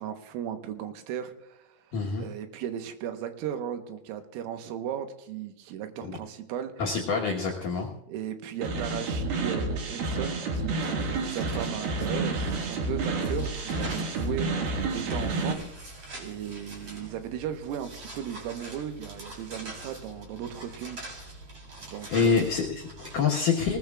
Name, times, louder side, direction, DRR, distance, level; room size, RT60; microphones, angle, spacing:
voice 1, 0.0-6.8 8.1-14.6 14.9-15.7 16.1-21.0 21.9-22.5, right 9 dB, 90° right, 7 dB, 3.7 m, -36 dB
voice 2, 1.9-2.2 6.0-6.2 6.8-7.9 22.1-23.8, left 5 dB, 75° left, -3 dB, 2.0 m, -26 dB
sound 1, 8.6-15.5, right 3 dB, 60° right, 3.3 m, -30 dB
sound 2, 11.2-23.2, right 2 dB, 35° right, 4.3 m, -44 dB
20.5 x 19.5 x 2.4 m, 0.86 s
omnidirectional pair, 5.8 m